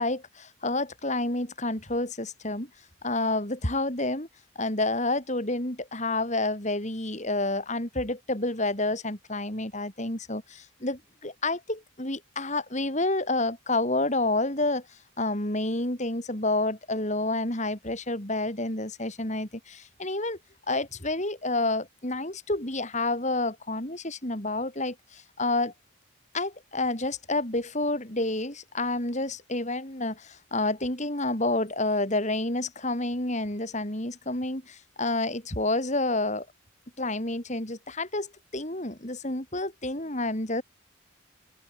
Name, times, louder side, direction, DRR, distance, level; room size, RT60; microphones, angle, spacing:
voice 1, 0.0-2.7 3.0-4.3 4.6-14.9 15.2-20.4 20.7-25.7 26.3-36.5 37.0-40.6, left 2 dB, 35° left, 3.9 m, -29 dB
head